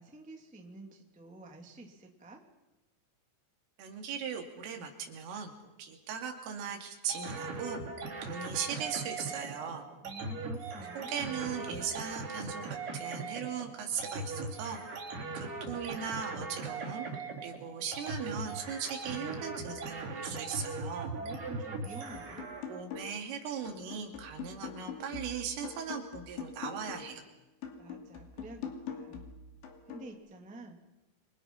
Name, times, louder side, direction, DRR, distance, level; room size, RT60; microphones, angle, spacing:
voice 1, 0.0-2.4 10.0-11.4 21.2-22.5 27.8-29.2 29.9-30.8, right 1 dB, 5° right, 2 dB, 1.2 m, -49 dB
voice 2, 3.8-5.5 5.8-7.8 8.2-9.9 11.0-12.6 12.9-14.8 15.4-17.1 17.4-21.1 22.7-27.2, right 7 dB, 75° right, 4 dB, 5.2 m, -38 dB
sound 1, 7.1-22.8, right 3 dB, 45° right, 4.1 m, -40 dB
sound 2, 22.1-23.3 23.7-27.2 27.6-30.1, left 6 dB, 60° left, 4.7 m, -44 dB
29.0 x 25.0 x 5.7 m, 1.0 s
omnidirectional pair, 5.8 m